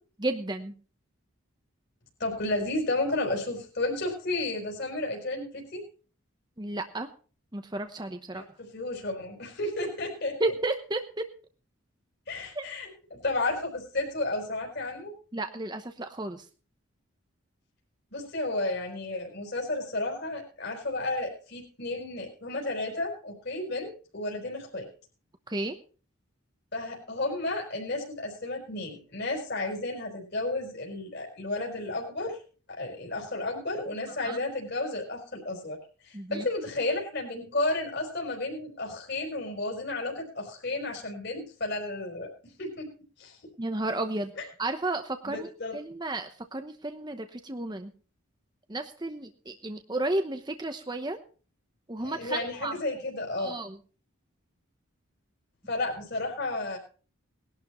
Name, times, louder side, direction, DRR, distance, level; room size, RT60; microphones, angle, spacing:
voice 1, 0.2-0.7 6.6-7.1 7.5-8.4 10.4-11.0 12.5-12.7 15.3-16.4 25.5-25.8 34.2-34.4 36.1-36.5 43.6-44.3 44.6-45.5 45.7-47.9 48.7-51.2 51.9-52.7 53.4-53.8, right 2 dB, 20° right, 7 dB, 0.9 m, -32 dB
voice 2, 2.2-5.8 8.3-10.5 12.3-15.1 18.1-24.9 26.7-32.4 32.7-35.8 36.0-42.3 42.6-42.9 43.2-43.4 44.4-44.5 45.2-45.8 52.0-53.6 55.7-56.8, left 2 dB, 50° left, 0 dB, 4.4 m, -32 dB
20.0 x 11.5 x 3.1 m, 0.37 s
head